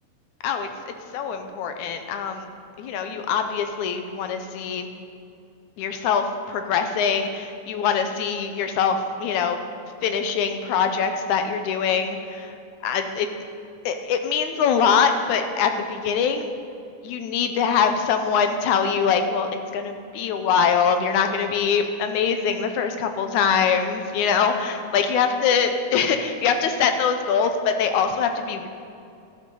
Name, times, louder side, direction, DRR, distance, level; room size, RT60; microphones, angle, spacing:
voice 1, 0.4-2.5 2.8-4.9 5.8-9.6 10.0-12.5 12.8-13.3 13.9-16.5 17.0-28.7, left 6 dB, 85° left, 7 dB, 2.2 m, -23 dB
13.5 x 13.0 x 3.9 m, 2.6 s
omnidirectional pair, 3.4 m